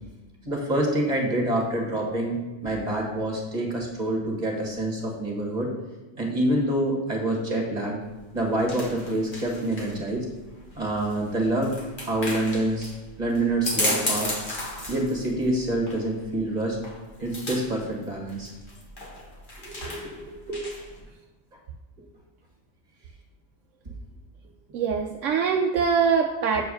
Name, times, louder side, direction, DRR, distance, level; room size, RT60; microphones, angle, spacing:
voice 1, 0.5-5.7 6.2-8.0 8.3-10.3 10.8-12.9 13.2-14.3 14.9-16.8 17.2-18.5 19.6-20.7, right 1 dB, 35° right, -1 dB, 1.8 m, -27 dB
sound 1, 8.0-21.0, left 1 dB, 40° left, 1.6 m, -35 dB
voice 2, 24.7-26.6, right 6 dB, 80° right, 3 dB, 1.0 m, -23 dB
7.6 x 4.6 x 6.4 m, 1.2 s
omnidirectional pair, 1.3 m